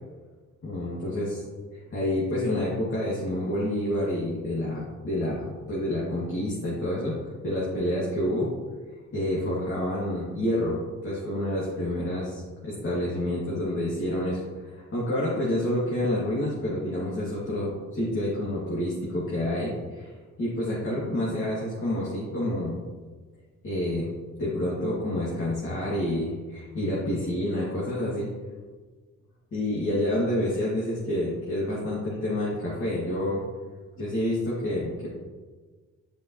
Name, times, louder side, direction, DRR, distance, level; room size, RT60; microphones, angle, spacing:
voice 1, 0.6-1.4 1.7-7.2 7.4-8.5 9.1-10.8 11.0-22.8 23.6-24.1 24.4-28.3 29.5-33.4 34.0-35.1, left 1 dB, 45° left, -7 dB, 2.3 m, -28 dB
10.5 x 5.2 x 3.0 m, 1.4 s
cardioid pair, 90°, 30 cm